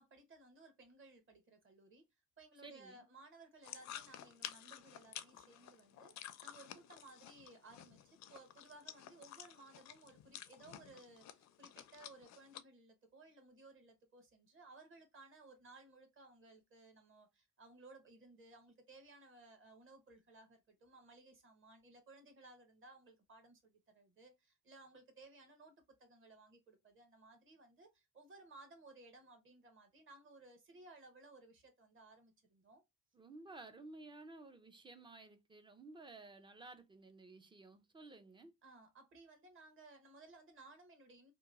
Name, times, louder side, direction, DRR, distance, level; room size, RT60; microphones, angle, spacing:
voice 1, 0.0-2.0 2.4-25.7 26.0-32.8 38.6-41.3, right 2 dB, 40° right, 1.0 m, -60 dB
voice 2, 2.6-3.1 33.1-38.5, right 2 dB, 15° right, 0.3 m, -55 dB
sound 1, 3.6-12.6, left 11 dB, 60° left, 0.4 m, -52 dB
2.9 x 2.2 x 2.4 m
cardioid pair, 130°, 31 cm